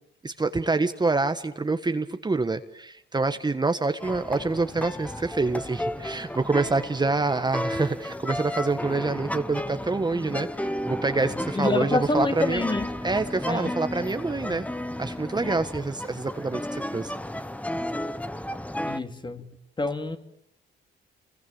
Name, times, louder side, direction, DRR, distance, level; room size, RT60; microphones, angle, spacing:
voice 1, 0.2-12.7 13.0-14.7 15.0-17.1, right 3 dB, 20° right, 9 dB, 1.4 m, -26 dB
sound 1, 4.0-19.0, left 1 dB, 5° left, 1.3 m, -33 dB
voice 2, 11.2-12.9 13.5-13.7 18.8-19.5 19.8-20.2, left 2 dB, 25° left, 7 dB, 2.7 m, -27 dB
29.0 x 22.5 x 8.8 m, 0.74 s
cardioid pair, 90°, 20 cm